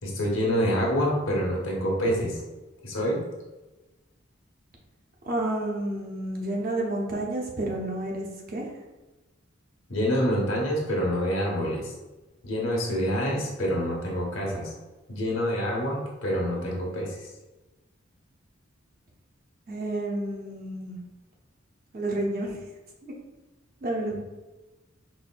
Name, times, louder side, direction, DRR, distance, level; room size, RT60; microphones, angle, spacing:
voice 1, 0.0-2.4 2.8-3.2 9.9-11.9 12.4-14.7 15.1-17.3, equal, 85° left, -2 dB, 1.0 m, -27 dB
voice 2, 5.2-8.6 12.9-13.1 19.7-21.0 21.9-22.6 23.0-23.1 23.8-24.2, right 1 dB, 45° right, -2 dB, 0.7 m, -30 dB
4.3 x 2.6 x 2.2 m, 1.1 s
head